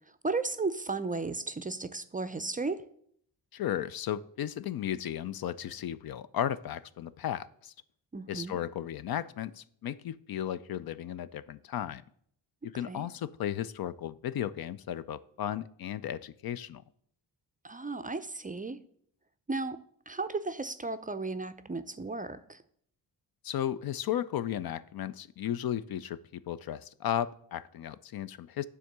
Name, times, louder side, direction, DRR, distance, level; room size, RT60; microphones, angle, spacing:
voice 1, 0.2-2.8 8.1-8.6 12.8-13.1 17.6-18.8 19.5-19.8 20.1-22.6, right 3 dB, 20° right, 11 dB, 0.4 m, -34 dB
voice 2, 3.5-7.7 8.3-12.0 12.6-16.8 23.4-28.7, left 11 dB, 55° left, 15 dB, 0.5 m, -35 dB
9.3 x 3.6 x 6.7 m, 0.66 s
cardioid pair, 55°, 45 cm